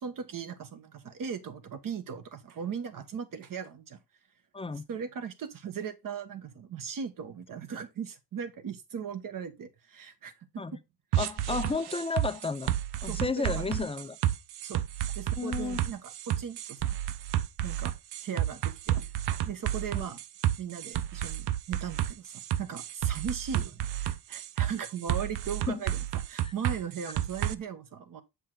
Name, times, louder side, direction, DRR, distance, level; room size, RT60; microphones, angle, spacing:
voice 1, 0.0-4.0 4.9-10.8 11.2-11.7 13.1-13.6 14.6-14.8 15.1-16.9 17.6-17.9 18.2-19.1 19.4-20.2 20.6-28.2, right 7 dB, 55° right, 1.4 m, -38 dB
voice 2, 4.5-4.9 10.6-10.8 11.2-12.7 13.0-14.2 15.4-15.8 19.9-20.1 25.7-25.8 26.4-26.5, left 4 dB, 15° left, 0.5 m, -32 dB
sound 1, 11.1-27.5, right 12 dB, 75° right, 0.7 m, -31 dB
7.8 x 5.5 x 3.9 m
cardioid pair, 130°, 40 cm